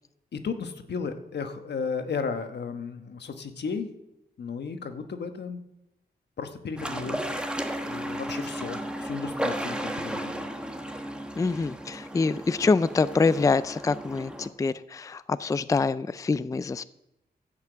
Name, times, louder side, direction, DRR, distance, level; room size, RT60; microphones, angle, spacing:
voice 1, 0.3-3.9 4.4-5.6 6.4-7.2 7.7-10.5, left 5 dB, 85° left, 7 dB, 1.2 m, -34 dB
sound 1, 6.8-14.5, right 1 dB, 5° right, 1.2 m, -34 dB
voice 2, 11.4-16.8, left 4 dB, 20° left, 15 dB, 0.3 m, -25 dB
15.0 x 5.9 x 7.9 m, 0.89 s
wide cardioid pair, 115°, 17 cm